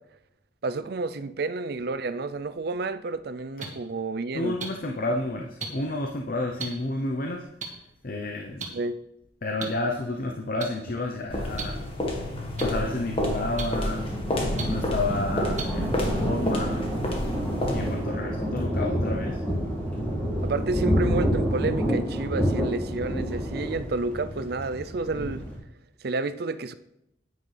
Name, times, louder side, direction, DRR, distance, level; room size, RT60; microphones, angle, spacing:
voice 1, 0.6-4.6 8.7-9.0 20.4-25.4 26.0-26.7, right 3 dB, 60° right, 0.5 m, -30 dB
sound 1, 3.6-3.7 4.6-4.7 5.6-5.7 6.6-6.7 7.6-7.7 8.6-8.7 9.6-9.7 10.6-10.7 11.6-11.7 12.6-12.7 13.6-13.7 14.6-14.7 15.6-15.7 16.6-16.7, right 5 dB, 40° right, 1.6 m, -32 dB
voice 2, 4.3-7.5 8.0-8.7 9.4-11.8 12.6-14.1 14.7-16.9 17.7-19.4, left 2 dB, 50° left, 0.8 m, -30 dB
sound 2, 11.3-18.1, left 1 dB, 30° left, 1.6 m, -30 dB
Thunder, 13.2-25.6, equal, 5° left, 2.0 m, -29 dB
9.4 x 9.4 x 3.4 m
head